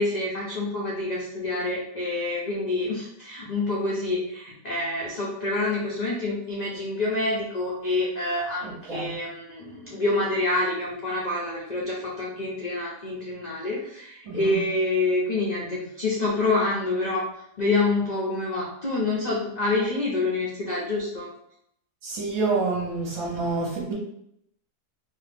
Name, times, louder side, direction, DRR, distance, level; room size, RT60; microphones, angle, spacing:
voice 1, 0.0-17.2 17.6-21.3, left 2 dB, 65° left, -5 dB, 0.4 m, -27 dB
voice 2, 8.6-9.2 14.2-14.6 22.0-23.9, right 3 dB, 65° right, -3 dB, 1.3 m, -28 dB
2.9 x 2.4 x 3.3 m, 0.74 s
omnidirectional pair, 1.6 m